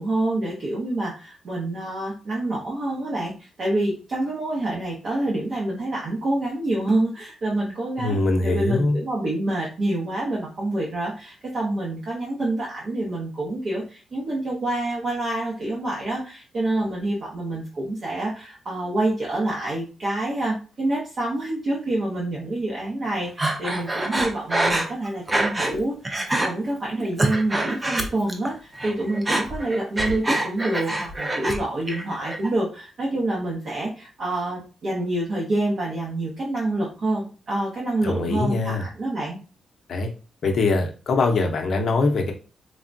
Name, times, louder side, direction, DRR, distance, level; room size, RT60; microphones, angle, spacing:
voice 1, 0.0-26.1 26.4-39.4, right 1 dB, 45° right, -4 dB, 0.8 m, -27 dB
voice 2, 8.0-9.0 38.0-38.9 39.9-40.1 40.4-42.3, left 3 dB, 55° left, 3 dB, 0.6 m, -22 dB
Breathing, 23.4-25.8 26.1-26.5 27.0-28.5 28.8-31.6 31.9-32.5, right 1 dB, 20° right, 0.4 m, -25 dB
3.3 x 2.1 x 2.5 m, 0.35 s
cardioid pair, 130°, 0 cm